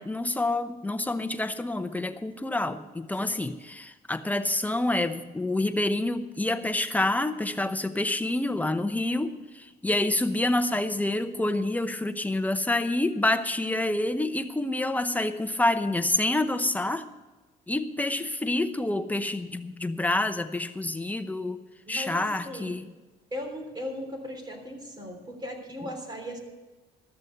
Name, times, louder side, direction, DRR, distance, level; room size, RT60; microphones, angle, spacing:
voice 1, 0.0-17.0 17.7-21.6 21.9-22.9, left 2 dB, 10° left, 9 dB, 0.8 m, -27 dB
voice 2, 21.9-22.7 23.3-26.4, equal, 25° right, 3 dB, 3.4 m, -37 dB
14.0 x 7.1 x 7.8 m, 1.2 s
cardioid pair, 110°, 17 cm